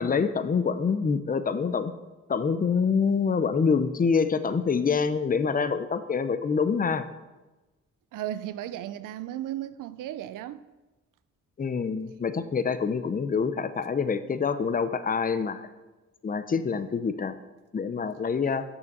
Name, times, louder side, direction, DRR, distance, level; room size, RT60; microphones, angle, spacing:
voice 1, 0.0-1.9 2.3-7.1 11.6-15.7 16.2-17.3 17.7-18.6, left 5 dB, 30° left, 0.6 m, -26 dB
voice 2, 8.1-10.6, right 12 dB, 85° right, 0.5 m, -35 dB
6.8 x 5.6 x 6.6 m
cardioid pair, 75°, 31 cm